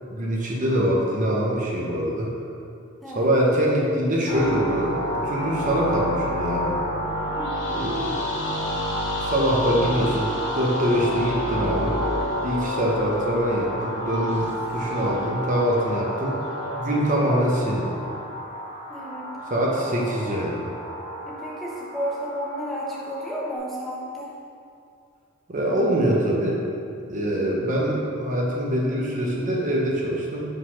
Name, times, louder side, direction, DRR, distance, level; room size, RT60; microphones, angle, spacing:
voice 1, 0.1-2.3 3.2-5.0 5.2-6.8 7.7-8.2 9.2-11.9 12.4-14.5 14.7-16.4 16.8-17.9 19.5-20.6 25.5-26.6 27.1-30.5, right 1 dB, 35° right, -3 dB, 0.8 m, -24 dB
voice 2, 3.0-3.3 7.4-7.8 18.9-19.3 21.3-24.3, equal, ahead, -6 dB, 0.8 m, -32 dB
sound 1, 4.3-23.5, equal, 55° left, 1.3 m, -30 dB
5.0 x 4.0 x 5.6 m, 2.4 s
head